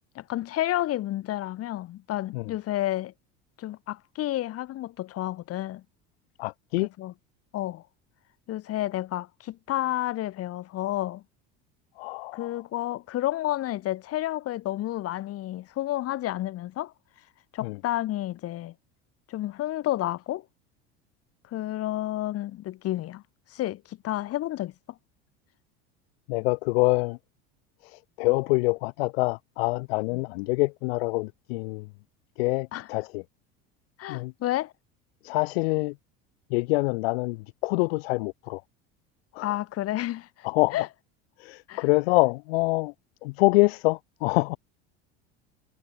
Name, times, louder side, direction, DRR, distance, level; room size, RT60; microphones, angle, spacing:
voice 1, 0.2-3.1 3.6-5.8 7.0-7.1 7.5-7.8 8.5-11.2 12.3-16.9 17.5-18.7 19.3-20.4 21.5-23.2 23.5-24.7 30.1-30.2 32.7-32.9 34.0-34.7 39.4-40.3 40.7-40.9 41.7-41.8, left 14 dB, 50° left, 3.7 m, -30 dB
voice 2, 6.4-6.9 12.0-12.6 17.6-17.8 26.3-27.2 27.8-31.9 32.4-33.2 34.1-34.3 35.2-35.9 36.5-38.6 39.3-39.5 40.4-40.8 41.4-42.9 43.2-44.6, left 25 dB, 80° left, 6.2 m, -25 dB
supercardioid pair, 110°, 30 cm